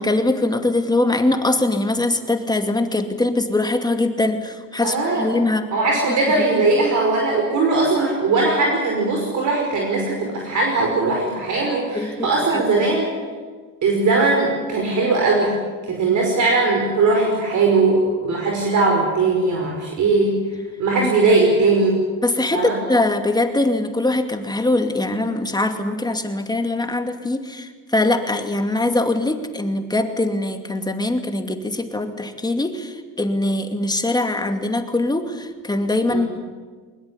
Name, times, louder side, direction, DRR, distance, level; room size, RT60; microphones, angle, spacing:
voice 1, 0.0-5.7 6.5-6.6 12.0-12.6 21.0-21.1 22.2-36.4, left 2 dB, 10° left, 6 dB, 2.4 m, -22 dB
voice 2, 4.8-5.3 5.7-13.1 13.8-15.6 15.9-20.3 20.8-22.0 22.5-22.7 36.1-36.3, right 3 dB, 60° right, 0 dB, 5.5 m, -19 dB
22.0 x 21.0 x 9.8 m, 1.5 s
cardioid pair, 120°, 34 cm